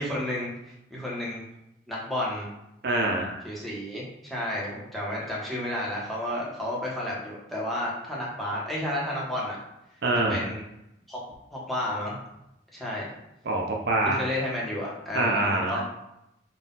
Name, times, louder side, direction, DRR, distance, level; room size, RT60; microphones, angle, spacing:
voice 1, 0.0-1.4 1.9-2.5 3.4-9.6 10.3-10.6 11.1-11.2 11.5-12.2 12.7-13.1 14.0-15.8, left 1 dB, ahead, -6 dB, 1.1 m, -31 dB
voice 2, 2.8-3.5 10.0-10.5 13.5-14.2 15.1-15.8, right 2 dB, 60° right, 0 dB, 0.6 m, -25 dB
3.9 x 2.5 x 4.0 m, 0.83 s
head